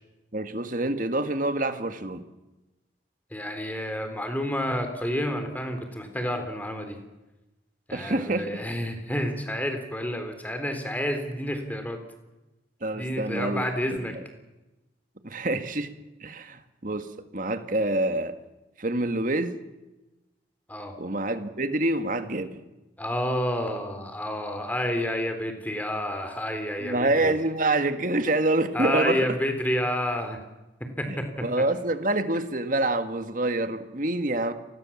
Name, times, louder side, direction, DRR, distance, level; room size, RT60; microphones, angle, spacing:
voice 1, 0.3-2.2 7.9-8.6 12.8-13.7 14.1-14.2 15.2-15.9 16.2-17.1 17.3-18.3 18.8-19.6 21.0-22.6 26.8-29.2 31.1-34.5, right 2 dB, 45° right, 9 dB, 1.9 m, -26 dB
voice 2, 3.3-7.0 7.9-12.0 12.9-14.2 20.7-20.9 23.0-27.4 28.7-30.4 30.8-31.3, equal, 10° left, 6 dB, 3.7 m, -29 dB
30.0 x 20.0 x 7.3 m, 1.0 s
head